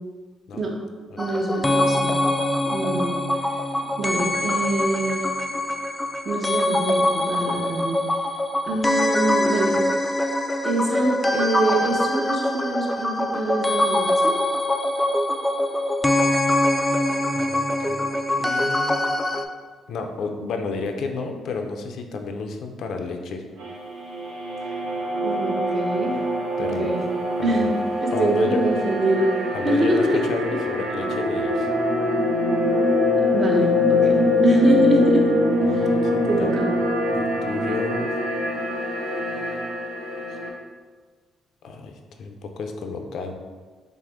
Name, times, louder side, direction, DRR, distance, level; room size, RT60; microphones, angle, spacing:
sound 1, 1.2-19.4, left 1 dB, 10° left, 0.3 m, -23 dB
voice 1, 1.2-2.1 2.7-3.1 4.0-5.3 6.2-8.0 8.6-9.8 10.6-14.4 25.2-26.2 26.6-27.0 27.4-29.3 29.6-30.2 33.3-35.3 35.7-35.9 36.2-36.7, right 2 dB, 40° right, -1 dB, 0.9 m, -25 dB
voice 2, 17.3-18.0 18.4-19.0 19.9-23.4 26.6-26.9 27.4-27.7 28.1-28.6 29.5-31.7 35.7-36.5 37.1-38.2 41.6-43.3, left 4 dB, 70° left, 4 dB, 0.4 m, -31 dB
sound 2, 23.6-40.5, left 1 dB, 85° right, 0.7 m, -23 dB
5.8 x 2.1 x 3.5 m, 1.4 s
cardioid pair, 90°, 0 cm